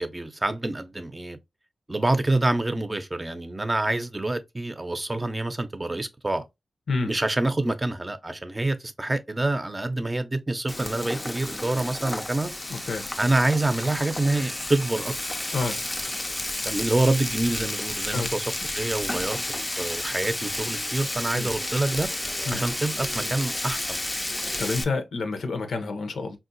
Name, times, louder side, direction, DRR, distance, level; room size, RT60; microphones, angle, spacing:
voice 1, 0.0-1.4 1.9-6.5 7.0-12.5 13.2-15.1 16.7-18.4 18.7-19.4 19.8-22.1 22.5-24.0, right 2 dB, 30° right, 0.6 m, -26 dB
Frying (food), 10.7-24.8, left 1 dB, 20° left, 0.4 m, -31 dB
voice 2, 12.7-13.1 15.5-15.8 18.1-18.3 21.4-21.5 22.5-22.6 24.6-26.4, left 3 dB, 85° left, 0.6 m, -28 dB
3.6 x 2.4 x 2.6 m
cardioid pair, 45°, 0 cm